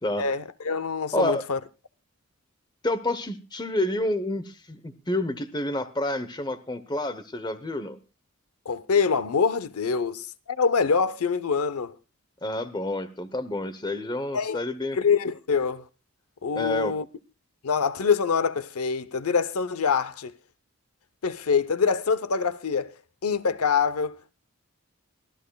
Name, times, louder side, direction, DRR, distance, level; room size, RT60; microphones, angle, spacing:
voice 1, 0.2-1.6 8.7-11.9 14.3-14.6 14.9-15.8 16.4-17.0 17.6-20.3 21.2-22.9 23.2-24.3, left 5 dB, 90° left, 0.7 m, -25 dB
voice 2, 2.8-8.0 12.4-15.0 16.5-16.9, left 1 dB, 20° left, 0.8 m, -29 dB
24.0 x 15.5 x 2.3 m
head